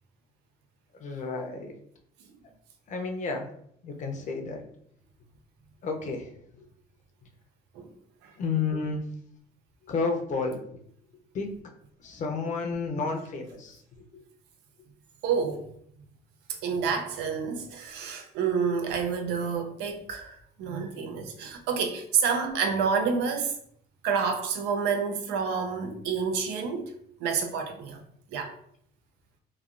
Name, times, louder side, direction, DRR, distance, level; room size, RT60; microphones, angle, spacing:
voice 1, 1.0-1.7 2.9-3.5 3.8-4.6 5.8-6.3 8.4-9.0 9.9-10.6 11.3-11.5 12.0-13.8 14.1-14.2, left 4 dB, 45° left, 0.6 m, -31 dB
voice 2, 15.2-15.7 16.6-23.5 24.0-26.9 27.2-28.0 28.3-28.5, right 6 dB, 85° right, 0.5 m, -28 dB
3.0 x 2.3 x 2.5 m
cardioid pair, 110°, 17 cm